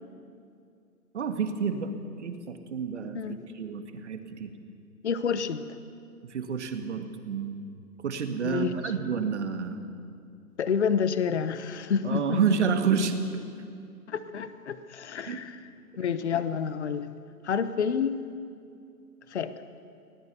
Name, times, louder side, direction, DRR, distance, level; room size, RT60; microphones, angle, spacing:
voice 1, 1.1-1.9 2.2-3.2 3.5-4.5 6.3-7.5 8.0-9.8 12.0-13.1 15.3-15.4, right 6 dB, 50° right, 6 dB, 1.9 m, -29 dB
voice 2, 5.0-5.7 8.4-8.7 10.6-12.4 14.1-15.6 16.0-17.1 17.4-18.2 19.3-19.5, left 7 dB, 45° left, 12 dB, 1.0 m, -28 dB
24.0 x 17.5 x 6.9 m, 2.4 s
hypercardioid pair, 175°, 46 cm